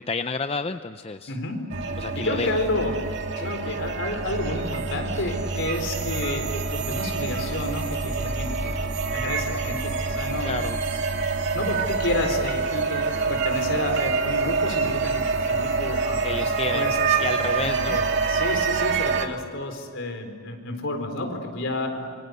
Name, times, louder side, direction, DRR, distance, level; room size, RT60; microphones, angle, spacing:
voice 1, 0.0-1.4 2.0-2.5 10.4-10.8 16.2-16.9 17.2-18.0, left 4 dB, 25° left, 9 dB, 0.6 m, -30 dB
voice 2, 1.3-1.6 2.2-3.1 3.4-8.7 9.1-10.5 11.5-17.2 17.6-18.0 18.3-22.1, left 1 dB, 55° left, 4 dB, 4.4 m, -30 dB
sound 1, 1.7-19.3, right 4 dB, 55° right, 2.3 m, -26 dB
27.0 x 24.5 x 8.2 m, 2.3 s
head